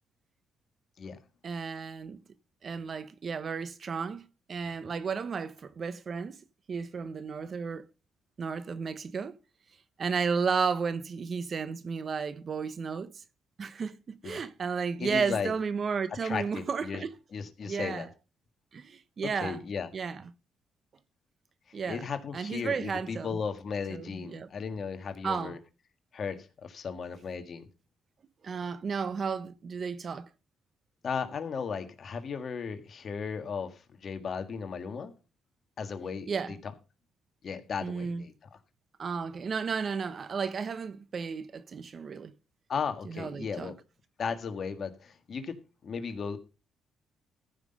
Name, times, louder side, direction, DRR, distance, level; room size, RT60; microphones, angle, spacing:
voice 1, 1.4-2.2 2.6-6.4 6.7-7.8 8.4-9.4 10.0-13.1 13.6-17.1 17.6-18.1 18.7-19.6 19.9-20.2 21.7-22.1 22.3-23.4 23.9-24.5 25.2-25.6 28.4-30.3 36.3-36.5 37.8-38.2 39.0-42.3 43.0-43.7, right 5 dB, 45° right, 1.0 m, -33 dB
voice 2, 15.0-15.5 16.2-17.0 17.3-18.1 19.3-19.9 21.9-25.6 26.1-27.6 31.0-35.1 35.8-36.7 37.4-38.3 42.7-43.8 44.2-46.4, left 6 dB, 50° left, 1.6 m, -35 dB
14.5 x 5.8 x 5.4 m
cardioid pair, 90°, 0 cm